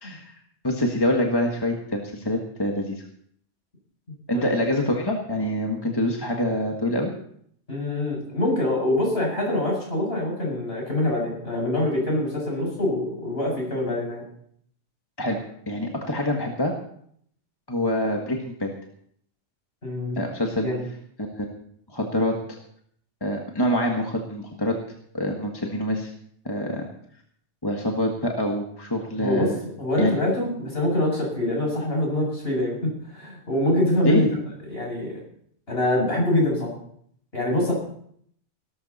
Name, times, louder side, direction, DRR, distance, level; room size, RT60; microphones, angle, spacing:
voice 1, 0.0-0.4 0.6-3.0 4.3-7.1 15.2-15.4 15.7-16.7 17.7-18.7 20.1-20.7 21.2-21.5 21.9-22.4 23.2-24.8 25.1-26.1 26.4-26.9 27.6-29.6 30.0-30.1 34.0-34.3, left 1 dB, 20° left, 1 dB, 1.6 m, -25 dB
voice 2, 7.7-14.2 19.8-20.2 20.6-20.8 29.2-34.3 34.7-35.1 35.7-36.7 37.3-37.7, left 1 dB, 55° left, -2 dB, 7.5 m, -24 dB
18.0 x 13.5 x 4.2 m, 0.65 s
omnidirectional pair, 1.3 m